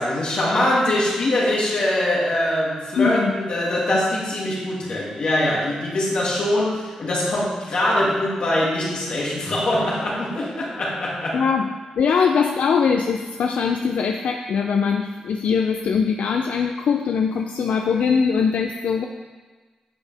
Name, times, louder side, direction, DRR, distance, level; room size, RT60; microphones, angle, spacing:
voice 1, 0.0-11.4, left 1 dB, 50° left, -4 dB, 2.5 m, -23 dB
voice 2, 3.0-3.3 11.3-19.0, left 6 dB, 75° left, 4 dB, 0.5 m, -21 dB
10.0 x 8.3 x 3.5 m, 1.4 s
wide cardioid pair, 170°, 2 cm